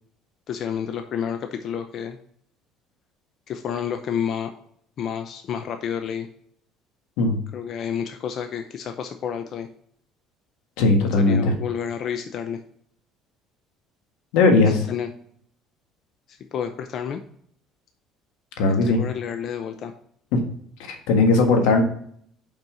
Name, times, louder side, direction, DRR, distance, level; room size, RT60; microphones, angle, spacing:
voice 1, 0.5-2.2 3.5-4.5 5.0-6.3 7.5-9.7 11.0-12.6 14.9-15.1 16.3-17.2 18.9-19.9, left 8 dB, 50° left, 7 dB, 0.6 m, -30 dB
voice 2, 10.8-11.5 14.3-14.9 18.6-19.0 20.3-20.4 20.9-21.8, left 3 dB, 90° left, 5 dB, 1.5 m, -18 dB
5.5 x 5.3 x 5.5 m, 0.66 s
cardioid pair, 120°, 0 cm